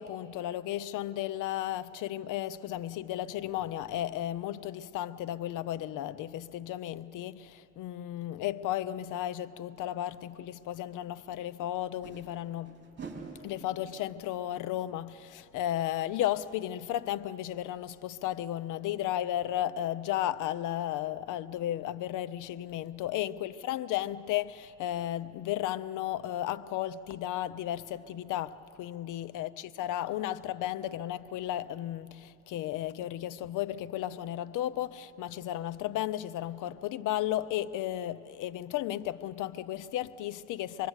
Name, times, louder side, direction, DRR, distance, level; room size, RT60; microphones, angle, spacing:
voice 1, 0.0-12.8 13.4-40.9, left 12 dB, 90° left, 0.7 m, -34 dB
sound 1, 10.5-10.6 11.8-16.4 16.6-16.7 17.1-17.2, right 4 dB, 35° right, 3.7 m, -49 dB
26.0 x 21.5 x 8.1 m
cardioid pair, 90°, 30 cm